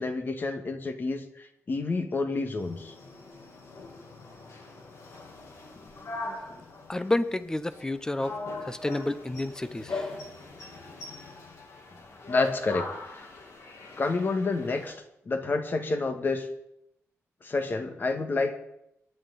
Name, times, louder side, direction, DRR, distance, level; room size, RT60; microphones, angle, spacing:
voice 1, 0.0-2.9 5.7-5.8 6.5-6.6 12.3-13.3 14.0-15.0 15.3-16.5 17.4-18.6, left 3 dB, 40° left, 6 dB, 1.9 m, -29 dB
sound 1, 2.6-14.9, left 3 dB, 70° left, 3.2 m, -41 dB
voice 2, 6.9-8.4 8.6-10.1, left 2 dB, 10° left, 13 dB, 0.8 m, -30 dB
23.0 x 11.0 x 4.2 m, 0.79 s
wide cardioid pair, 145°, 5 cm